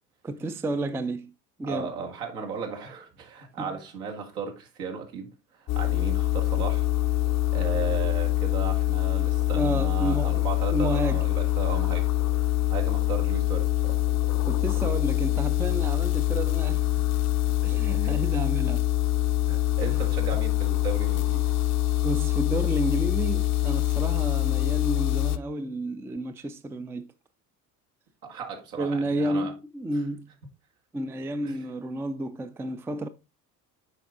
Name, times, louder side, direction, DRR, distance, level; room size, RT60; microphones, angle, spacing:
voice 1, 0.2-1.3 1.6-1.9 3.6-3.8 9.5-10.5 10.7-11.2 14.5-17.0 17.6-18.9 22.0-27.1 28.8-30.3 30.9-33.1, right 1 dB, 5° right, 0.4 m, -31 dB
voice 2, 1.6-6.9 7.5-12.1 12.7-14.0 17.7-18.3 19.5-21.5 28.2-29.5 31.4-31.6, right 5 dB, 70° right, 1.9 m, -36 dB
sound 1, 5.7-25.4, left 15 dB, 35° left, 0.6 m, -25 dB
8.3 x 5.3 x 3.7 m
figure-of-eight pair, 60°, 46 cm